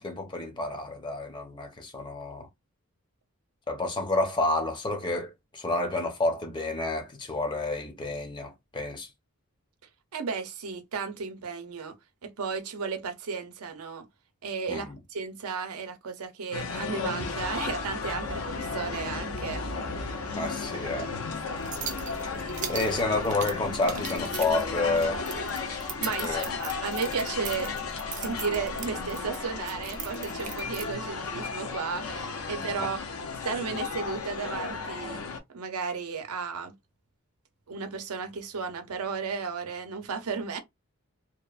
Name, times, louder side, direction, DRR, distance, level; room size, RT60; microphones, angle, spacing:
voice 1, 0.0-2.5 3.7-9.1 14.7-15.0 20.4-21.1 22.7-25.2 26.2-26.4 32.8-32.9, left 2 dB, 20° left, 0.5 m, -29 dB
voice 2, 10.1-11.9 12.2-14.1 14.4-19.6 25.7-27.7 28.2-33.0 33.4-35.2 35.5-36.7 37.7-40.6, right 5 dB, 85° right, 0.6 m, -34 dB
sound 1, 16.5-35.4, left 4 dB, 80° left, 0.5 m, -34 dB
sound 2, 18.2-23.3, equal, 50° left, 0.9 m, -43 dB
sound 3, 21.6-30.9, right 7 dB, 35° right, 0.4 m, -40 dB
2.8 x 2.0 x 2.3 m
head